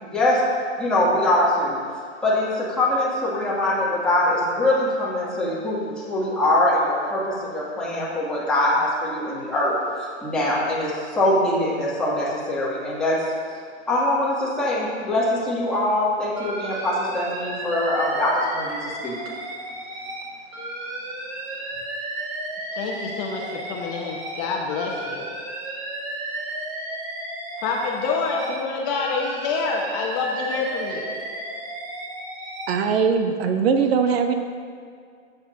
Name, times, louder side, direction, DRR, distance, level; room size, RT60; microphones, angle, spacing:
voice 1, 0.0-0.4 0.8-1.8 2.2-9.7 10.2-13.2 13.9-19.2, left 1 dB, ahead, -9 dB, 2.4 m, -23 dB
Alarm, 16.4-20.2 20.5-24.4 24.7-28.6 28.9-32.7, right 2 dB, 35° right, 1.9 m, -33 dB
voice 2, 22.7-25.3 27.6-31.1, left 4 dB, 35° left, 0 dB, 1.1 m, -27 dB
voice 3, 32.7-34.3, right 6 dB, 60° right, 7 dB, 0.7 m, -20 dB
12.5 x 8.1 x 2.8 m, 2.2 s
hypercardioid pair, 140°, 34 cm